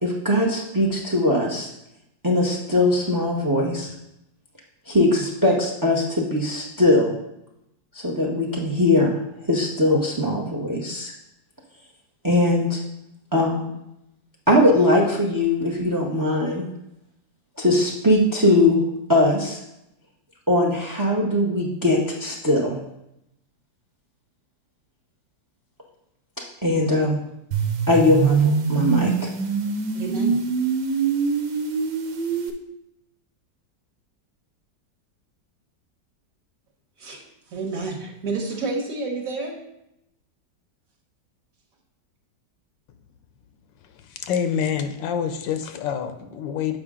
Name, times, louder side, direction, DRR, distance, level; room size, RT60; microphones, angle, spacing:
voice 1, 0.0-1.7 2.2-3.9 4.9-7.1 8.0-9.2 9.5-11.1 12.2-12.8 13.3-13.7 14.5-16.7 17.6-18.8 19.1-19.6 20.5-22.8 26.6-27.2 27.9-29.3, left 1 dB, 30° right, 0 dB, 0.3 m, -20 dB
sound 1, 27.5-32.5, right 5 dB, 85° right, 1.4 m, -24 dB
voice 2, 29.9-30.4 37.0-37.2 37.5-39.6, right 3 dB, 55° right, 0 dB, 1.4 m, -29 dB
voice 3, 44.0-46.8, left 8 dB, 85° left, 8 dB, 1.4 m, -27 dB
7.8 x 5.1 x 3.7 m, 0.84 s
omnidirectional pair, 2.0 m